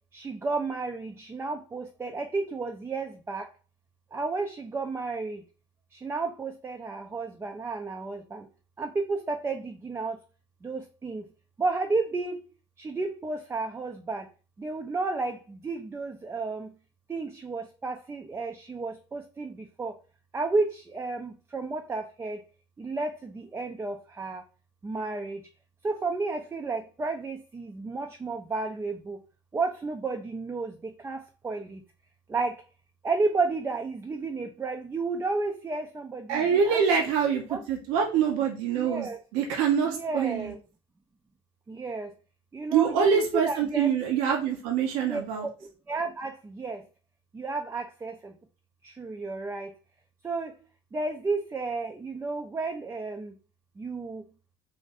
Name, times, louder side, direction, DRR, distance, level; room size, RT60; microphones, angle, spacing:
voice 1, 0.1-3.5 4.1-5.4 5.9-8.5 8.8-10.2 10.6-11.3 11.6-12.5 12.8-14.3 14.6-16.7 17.1-19.9 20.3-22.4 22.8-24.4 24.8-25.4 25.8-29.2 29.5-31.8 32.3-32.6 33.0-36.8 37.5-37.6 38.7-39.2 39.9-40.6 41.7-42.1 42.5-43.9 45.1-45.5 45.9-46.8 47.3-48.3 48.8-49.7 50.2-50.5 50.9-53.3 53.8-54.2, right 3 dB, 20° right, 4 dB, 0.4 m, -32 dB
voice 2, 36.3-40.5 42.7-45.5, right 7 dB, 70° right, 2 dB, 0.6 m, -25 dB
2.5 x 2.5 x 3.9 m, 0.35 s
hypercardioid pair, 65°, 13 cm